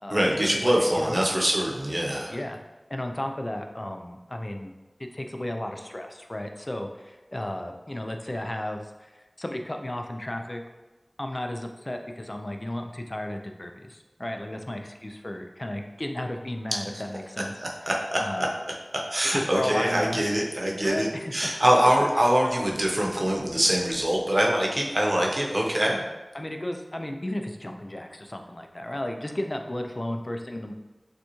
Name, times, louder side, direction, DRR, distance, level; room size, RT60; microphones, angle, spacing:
voice 1, 0.1-2.3 17.6-18.5 19.1-26.0, right 1 dB, 50° right, -1 dB, 0.9 m, -24 dB
voice 2, 0.6-1.2 2.3-2.6 2.9-4.7 5.0-10.6 11.2-17.6 18.2-18.5 19.3-20.2 20.8-21.5 22.0-22.1 25.8-26.0 26.3-30.7, left 1 dB, 40° left, 4 dB, 0.4 m, -34 dB
6.7 x 2.3 x 3.0 m, 1.1 s
wide cardioid pair, 45°, 0 cm